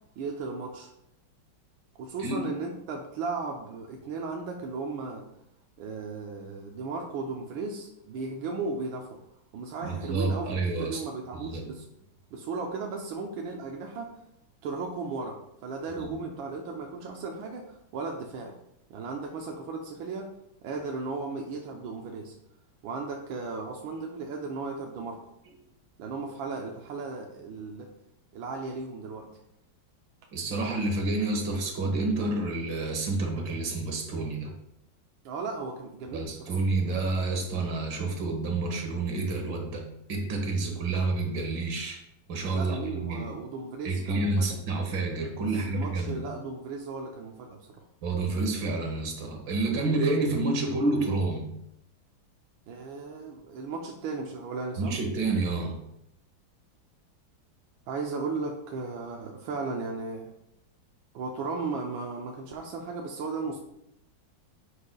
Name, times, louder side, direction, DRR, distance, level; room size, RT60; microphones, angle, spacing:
voice 1, 0.2-0.9 1.9-5.3 5.8-9.2 9.5-11.9 12.3-14.2 14.6-18.6 18.9-20.3 20.6-22.3 22.8-25.3 26.0-27.9 28.3-29.3 35.2-36.5 42.5-44.6 45.4-47.8 52.7-55.0 57.9-60.4 61.1-63.6, right 4 dB, 90° right, 1 dB, 1.5 m, -36 dB
voice 2, 9.8-11.0 11.3-11.6 16.0-16.2 30.3-34.5 36.1-42.0 42.3-43.3 43.8-46.2 48.0-51.5 54.8-55.8, right 2 dB, 70° right, 3 dB, 2.0 m, -29 dB
9.9 x 6.6 x 2.2 m, 0.79 s
omnidirectional pair, 2.2 m